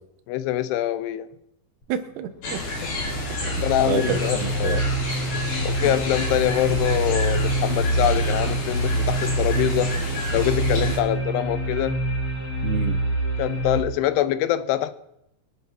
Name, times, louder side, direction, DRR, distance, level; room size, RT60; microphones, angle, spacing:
voice 1, 0.3-1.3 3.6-4.9 5.6-9.9 10.3-12.0 13.4-14.9, left 12 dB, 80° left, 13 dB, 2.9 m, -24 dB
voice 2, 1.9-2.6 3.4-3.5 3.9-4.8 12.6-13.0, right 9 dB, 75° right, 9 dB, 3.1 m, -29 dB
sound 1, 2.4-11.0, left 2 dB, 60° left, 5.2 m, -30 dB
sound 2, 2.4-13.8, right 2 dB, 40° left, 2.8 m, -26 dB
24.0 x 8.4 x 6.0 m, 0.80 s
omnidirectional pair, 5.0 m